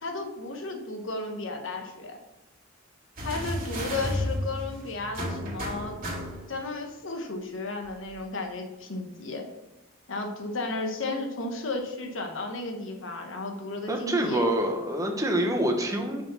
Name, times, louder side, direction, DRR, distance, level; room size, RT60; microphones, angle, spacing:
voice 1, 0.0-2.2 3.2-6.0 6.5-9.5 10.1-14.5, left 2 dB, 65° left, 4 dB, 1.2 m, -34 dB
sound 1, 3.2-6.7 7.9-8.0, equal, 45° right, 2.3 m, -33 dB
voice 2, 13.9-16.2, right 1 dB, 15° right, 3 dB, 1.0 m, -26 dB
5.9 x 4.9 x 5.6 m, 1.0 s
head